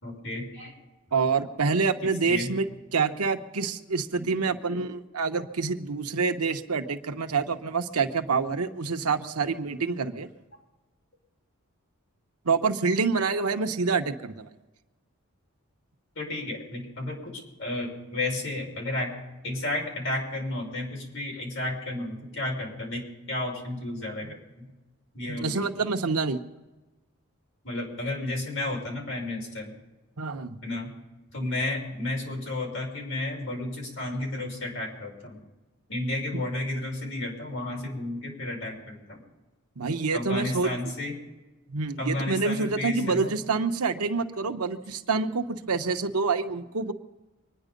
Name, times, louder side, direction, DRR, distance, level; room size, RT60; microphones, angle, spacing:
voice 1, 0.0-0.7 1.1-1.2 2.2-2.5 4.1-4.2 4.5-4.8 16.2-19.2 19.4-24.7 25.1-25.6 27.6-29.7 30.6-30.9 31.3-35.4 35.9-39.2 40.1-41.1 42.0-43.3, left 1 dB, 55° left, -1 dB, 5.8 m, -32 dB
voice 2, 1.1-2.7 2.9-10.3 12.4-14.5 24.2-24.3 25.3-26.4 30.2-30.6 39.8-40.7 41.7-46.9, right 4 dB, 90° right, 7 dB, 1.1 m, -27 dB
24.5 x 10.0 x 5.3 m, 1.1 s
head